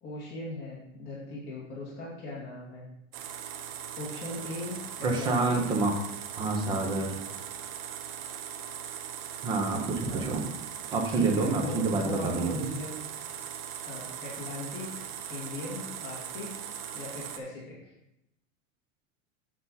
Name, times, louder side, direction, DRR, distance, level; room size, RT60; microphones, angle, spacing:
voice 1, 0.0-2.9 4.0-5.6 10.1-10.4 11.1-12.9 13.8-14.9 15.3-16.6 16.9-17.9, left 2 dB, 25° left, -7 dB, 2.0 m, -39 dB
sound 1, 3.1-17.4, right 9 dB, 45° right, 0.8 m, -40 dB
voice 2, 5.0-5.9 6.4-7.2 9.4-10.4 10.9-12.7, right 3 dB, 10° right, 2 dB, 0.6 m, -28 dB
8.2 x 5.5 x 4.0 m, 0.83 s
supercardioid pair, 170°, 40 cm